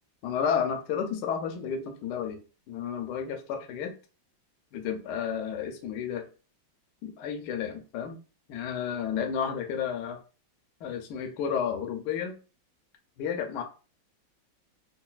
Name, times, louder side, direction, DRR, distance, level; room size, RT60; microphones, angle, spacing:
voice 1, 0.2-2.4 2.7-3.9 4.7-6.3 7.0-8.2 8.5-10.2 10.8-12.3 13.2-13.6, left 7 dB, 75° left, 5 dB, 1.0 m, -31 dB
3.9 x 2.1 x 2.3 m, 0.35 s
omnidirectional pair, 2.1 m